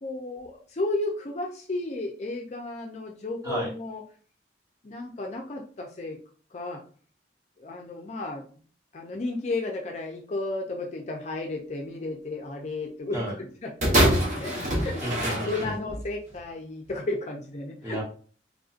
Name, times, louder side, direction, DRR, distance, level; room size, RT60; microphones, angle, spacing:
voice 1, 0.0-4.0 4.8-6.2 6.5-6.8 7.6-8.4 8.9-14.5 14.8-15.0 15.5-18.0, left 2 dB, 40° left, 2 dB, 0.4 m, -33 dB
sound 1, 13.8-16.1 16.9-17.0, equal, 45° right, 0.9 m, -24 dB
voice 2, 15.0-15.7 17.8-18.0, equal, 20° right, -4 dB, 1.0 m, -32 dB
3.5 x 2.6 x 2.4 m, 0.42 s
head